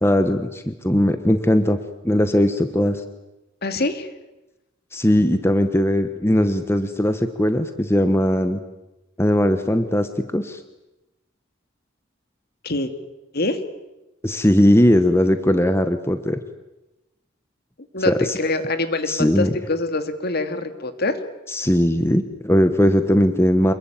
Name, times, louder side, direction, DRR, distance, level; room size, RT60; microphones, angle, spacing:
voice 1, 0.0-1.8 2.0-3.0 4.9-8.6 9.2-10.6 14.2-16.4 18.0-18.4 19.1-19.5 21.5-23.7, equal, 15° left, 9 dB, 1.2 m, -19 dB
voice 2, 3.6-4.1 12.6-12.9 13.3-13.6 17.9-21.2, left 2 dB, 50° left, 9 dB, 2.5 m, -24 dB
27.5 x 22.0 x 9.1 m, 1.0 s
head